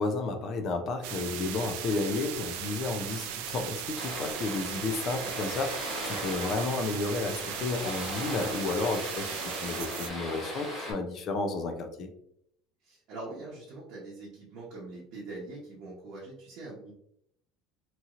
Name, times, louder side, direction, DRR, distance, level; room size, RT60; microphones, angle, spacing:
voice 1, 0.0-12.1, left 3 dB, 35° left, 6 dB, 0.4 m, -32 dB
sound 1, 1.0-10.1, right 10 dB, 70° right, 0.3 m, -38 dB
sound 2, 4.0-10.9, equal, 10° left, 1.0 m, -38 dB
voice 2, 12.8-16.9, right 2 dB, 50° right, -5 dB, 0.8 m, -43 dB
3.0 x 2.7 x 2.4 m, 0.71 s
cardioid pair, 165°, 0 cm